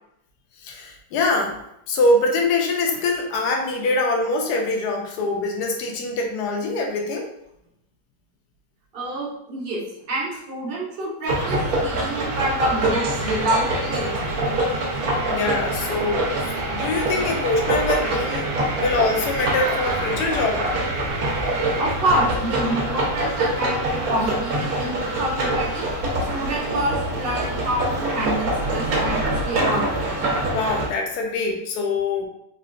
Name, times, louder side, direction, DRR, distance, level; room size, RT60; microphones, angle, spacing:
voice 1, 0.6-1.6 1.9-7.3 15.3-18.5 18.8-20.6 30.5-32.3, left 2 dB, 75° left, 2 dB, 1.2 m, -24 dB
voice 2, 8.9-14.2 21.8-25.9 26.3-30.1, right 1 dB, 45° right, -3 dB, 0.9 m, -27 dB
sound 1, 11.3-30.9, right 1 dB, 65° right, 1.2 m, -25 dB
sound 2, 12.0-22.0, right 5 dB, 90° right, 0.6 m, -34 dB
sound 3, 20.0-23.4 23.9-24.6 24.9-25.9 26.2-26.5 28.0-29.3, right 2 dB, 60° left, 0.8 m, -41 dB
3.8 x 3.0 x 2.5 m, 0.79 s
omnidirectional pair, 1.8 m